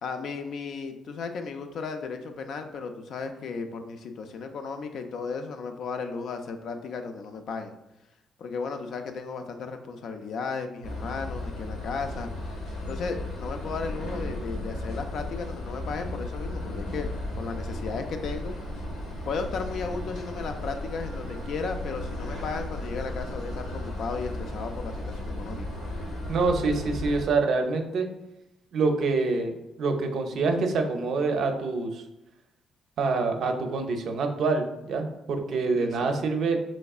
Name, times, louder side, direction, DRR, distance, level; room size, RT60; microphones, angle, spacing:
voice 1, 0.0-7.7 8.4-12.3 12.9-17.1 17.3-18.5 19.3-25.7 35.8-36.1, left 5 dB, 70° left, 6 dB, 0.4 m, -35 dB
sound 1, 10.8-27.2, left 1 dB, 90° left, 1.1 m, -35 dB
voice 2, 26.3-28.1 28.7-32.0 33.0-36.6, right 3 dB, 70° right, 5 dB, 0.5 m, -26 dB
3.5 x 3.1 x 2.4 m, 0.90 s
cardioid pair, 90°, 0 cm